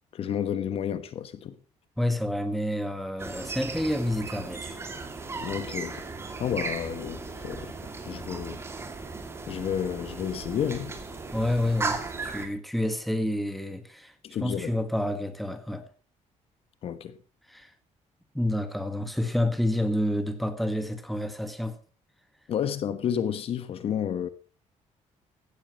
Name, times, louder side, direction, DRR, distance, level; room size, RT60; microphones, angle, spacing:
voice 1, 0.1-1.5 5.4-6.0 6.4-7.7 8.0-8.6 9.5-11.0 14.2-14.7 16.8-17.2 22.5-24.3, left 9 dB, 50° left, 1.2 m, -31 dB
voice 2, 2.0-4.8 11.3-14.1 14.4-15.9 17.5-17.7 18.3-21.8, left 1 dB, ahead, 1.5 m, -29 dB
sound 1, 3.2-12.5, right 4 dB, 20° right, 2.5 m, -36 dB
16.5 x 13.0 x 3.1 m
cardioid pair, 160°, 12 cm